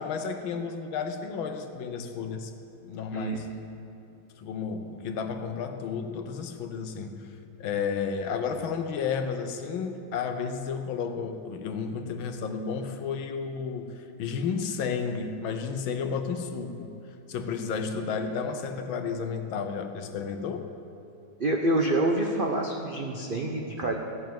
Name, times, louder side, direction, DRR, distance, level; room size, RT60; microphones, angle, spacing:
voice 1, 0.0-2.5 2.8-3.5 4.4-7.3 7.6-16.9 17.3-20.7, left 6 dB, 85° left, 7 dB, 1.7 m, -32 dB
voice 2, 3.1-3.5 21.4-23.9, right 1 dB, 45° right, 1 dB, 0.7 m, -27 dB
15.5 x 7.1 x 9.1 m, 2.8 s
omnidirectional pair, 2.1 m